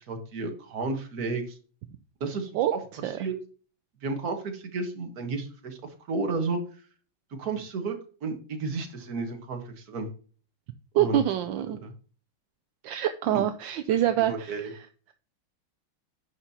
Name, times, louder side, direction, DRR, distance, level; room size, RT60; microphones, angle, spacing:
voice 1, 0.1-1.6 2.2-2.8 3.2-3.3 4.0-5.8 6.1-6.6 7.4-8.0 8.2-10.1 10.9-11.2 11.7-11.9 13.3-13.4 14.3-14.7, right 3 dB, 50° right, 5 dB, 1.8 m, -32 dB
voice 2, 10.9-11.8 12.8-14.6, right 12 dB, 75° right, 9 dB, 1.2 m, -25 dB
10.5 x 6.0 x 2.8 m, 0.39 s
omnidirectional pair, 2.3 m